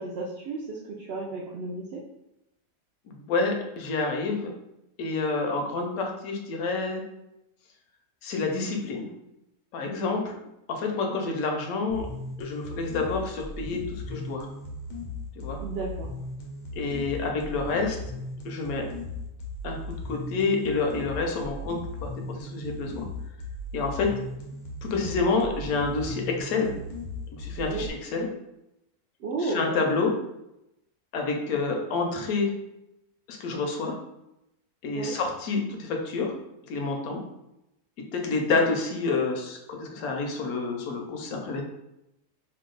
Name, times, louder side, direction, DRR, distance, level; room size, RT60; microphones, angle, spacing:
voice 1, 0.0-2.0 11.1-11.2 15.6-16.1 25.0-25.1 27.7-27.9 29.2-30.0 34.9-35.1, right 3 dB, 80° right, -2 dB, 0.5 m, -33 dB
voice 2, 3.1-4.5 5.0-7.0 8.2-9.1 9.7-10.3 10.7-12.1 12.4-14.5 15.4-15.6 16.8-18.0 18.4-18.9 19.6-19.8 20.1-23.1 23.7-24.1 24.8-26.7 27.3-28.3 29.4-30.1 31.1-32.5 33.3-34.0 34.8-36.3 36.7-37.2 38.1-41.6, left 3 dB, 75° left, 2 dB, 1.0 m, -28 dB
sound 1, 11.9-27.9, left 2 dB, 90° left, 1.3 m, -37 dB
2.9 x 2.2 x 3.7 m, 0.88 s
omnidirectional pair, 1.6 m